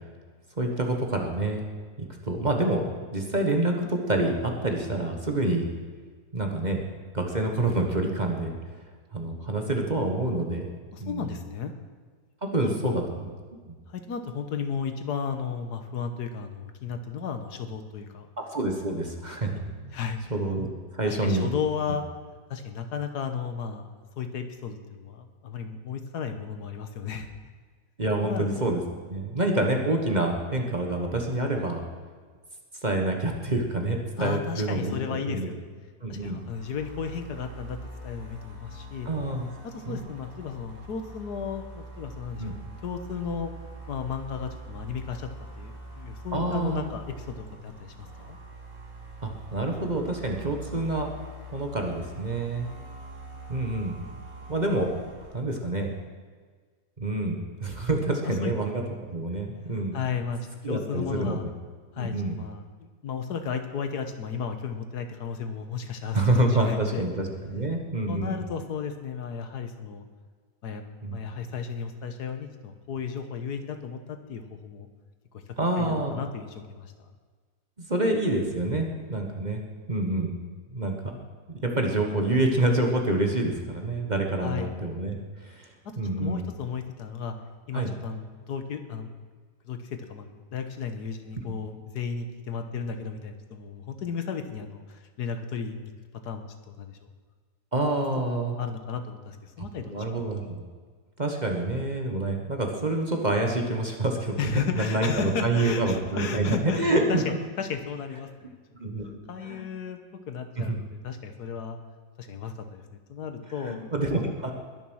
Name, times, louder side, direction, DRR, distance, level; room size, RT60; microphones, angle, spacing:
voice 1, 0.6-1.6 2.0-5.7 6.3-6.8 7.1-8.6 9.1-10.7 11.0-11.3 12.4-13.0 13.7-13.8 18.4-19.9 20.3-20.7 20.9-21.5 28.0-28.8 29.1-31.8 32.8-35.5 36.0-36.4 39.0-39.5 39.8-40.0 42.4-42.5 46.3-46.8 49.2-51.1 51.5-52.7 53.5-54.0 54.5-54.9 55.3-55.9 57.0-58.8 59.1-60.0 60.6-61.4 62.0-62.4 66.1-68.4 71.0-71.2 75.6-76.2 77.8-79.6 79.9-80.3 80.7-81.2 81.5-85.2 85.4-85.7 86.0-86.4 87.7-87.9 97.7-98.5 99.9-100.6 101.2-107.2 108.7-109.7 110.6-110.8 113.6-114.5, right 2 dB, 30° right, 2 dB, 1.4 m, -27 dB
voice 2, 10.9-11.7 12.6-13.0 13.9-18.3 19.9-20.2 21.0-22.1 22.5-27.3 28.2-28.7 34.2-35.7 36.1-39.1 39.6-43.5 43.9-45.3 45.6-48.4 58.2-58.5 59.9-61.4 61.9-66.2 66.5-67.1 68.1-70.0 70.6-74.9 75.3-75.4 75.8-77.1 84.4-84.7 85.8-87.4 87.7-89.1 89.6-95.9 96.2-96.5 96.7-97.0 98.0-98.1 98.6-100.0 104.4-108.5 109.3-110.0 110.3-111.8 112.2-112.8 113.1-113.8, left 6 dB, 75° left, 8 dB, 1.6 m, -34 dB
sound 1, 36.2-55.4, right 2 dB, 55° right, 5.7 m, -44 dB
21.0 x 7.1 x 6.3 m, 1.5 s
omnidirectional pair, 1.8 m